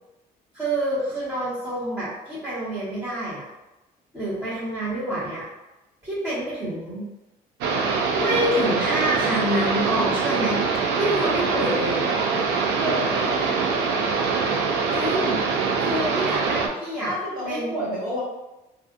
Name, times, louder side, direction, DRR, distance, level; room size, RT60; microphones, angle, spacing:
voice 1, 0.5-3.5 4.1-5.5 6.0-7.1 8.2-10.6 10.9-12.0 14.9-15.4 15.8-17.1 17.5-17.7, right 1 dB, 15° right, -14 dB, 1.2 m, -27 dB
sound 1, 7.6-16.7, right 4 dB, 85° right, 0.4 m, -23 dB
voice 2, 12.8-13.7 17.0-18.2, equal, 60° right, -7 dB, 1.3 m, -30 dB
2.5 x 2.4 x 2.5 m, 1.0 s
cardioid pair, 110°, 17 cm